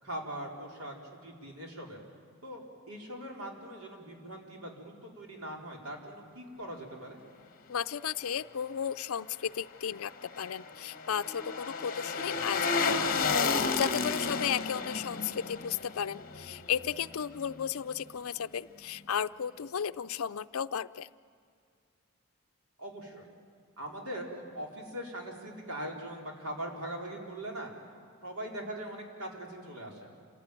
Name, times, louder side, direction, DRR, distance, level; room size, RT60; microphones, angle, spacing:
voice 1, 0.0-2.0 2.4-7.2 12.3-12.5 22.8-23.3 23.8-27.7 28.2-30.1, right 1 dB, 85° right, 0 dB, 4.1 m, -41 dB
voice 2, 7.7-12.8 13.1-21.1, left 8 dB, 75° left, 13 dB, 0.5 m, -34 dB
sound 1, 9.9-17.1 17.5-17.6, left 4 dB, 40° left, 1.1 m, -32 dB
27.0 x 16.5 x 9.1 m, 2.3 s
head